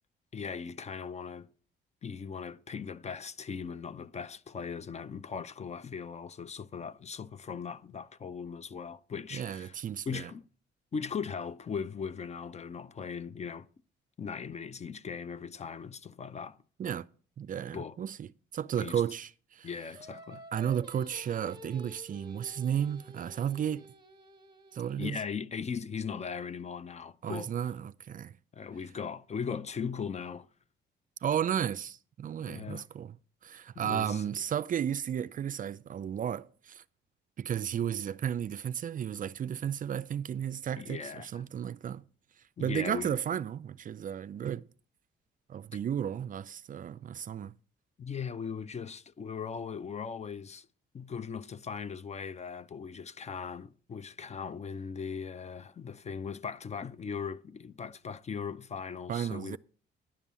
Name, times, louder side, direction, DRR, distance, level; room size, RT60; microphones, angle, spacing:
voice 1, 0.3-1.5 2.0-10.5 10.9-13.7 14.2-16.6 17.7-18.0 18.8-19.0 19.6-20.4 25.0-27.5 28.5-30.5 32.4-32.9 33.7-34.3 40.8-41.4 42.6-43.1 45.7-45.8 48.0-50.7 50.9-59.6, left 6 dB, 35° left, 0.5 m, -39 dB
voice 2, 9.3-10.3 16.8-17.1 17.4-18.3 18.5-19.7 20.5-23.9 24.7-25.2 27.2-28.3 31.2-33.2 33.4-36.8 37.4-42.0 42.6-44.7 45.5-47.6 59.1-59.6, right 9 dB, 45° right, 0.4 m, -33 dB
Singing, 20.0-25.3, equal, 25° right, 1.1 m, -51 dB
10.5 x 5.4 x 7.3 m
cardioid pair, 90°, 20 cm